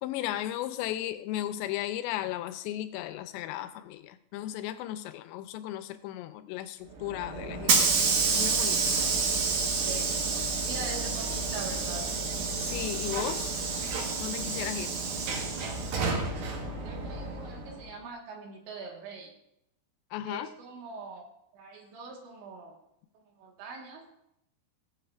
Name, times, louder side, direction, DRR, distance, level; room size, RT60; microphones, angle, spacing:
voice 1, 0.0-9.0 12.6-13.5 14.2-15.0 20.1-20.5, left 13 dB, 85° left, 11 dB, 2.8 m, -35 dB
Hiss / Sliding door, 7.0-17.8, right 4 dB, 65° right, 2.9 m, -29 dB
voice 2, 9.6-12.1 16.8-19.3 20.3-21.3 21.5-22.7 23.3-24.1, right 4 dB, 85° right, 0 dB, 3.9 m, -42 dB
17.0 x 8.7 x 2.5 m, 0.76 s
omnidirectional pair, 5.1 m